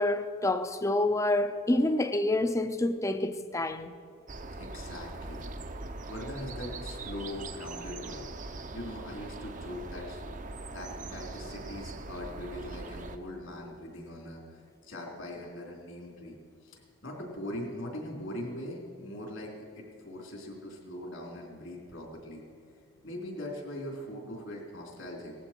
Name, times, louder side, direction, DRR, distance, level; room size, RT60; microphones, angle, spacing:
voice 1, 0.0-3.9, left 2 dB, 15° left, 0.5 m, -28 dB
sound 1, 4.3-13.2, right 2 dB, 40° right, 0.7 m, -41 dB
voice 2, 4.6-5.5 5.8-8.3 8.7-10.2 10.7-16.4 16.6-22.4 23.0-25.3, left 1 dB, 70° left, 3.5 m, -41 dB
18.5 x 14.5 x 4.5 m
head